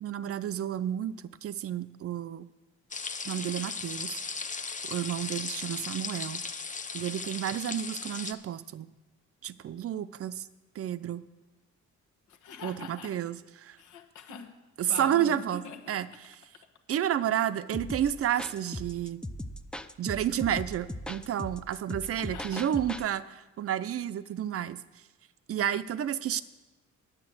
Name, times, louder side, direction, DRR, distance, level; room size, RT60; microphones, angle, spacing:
voice 1, 0.0-2.5 3.2-4.2 4.8-6.4 6.9-8.9 9.4-10.5 10.7-11.3 12.6-13.8 14.8-15.6 15.9-16.3 16.9-19.2 20.0-24.8 25.5-26.4, right 10 dB, 50° right, 15 dB, 0.6 m, -31 dB
sound 1, 2.9-8.3, left 4 dB, 25° left, 0.8 m, -37 dB
voice 2, 12.3-13.2 13.8-14.5 14.9-16.0 22.3-22.7, left 6 dB, 80° left, 5 dB, 1.3 m, -43 dB
sound 2, 17.7-23.1, left 1 dB, 5° left, 0.5 m, -39 dB
9.8 x 7.4 x 7.7 m, 1.1 s
cardioid pair, 90°, 30 cm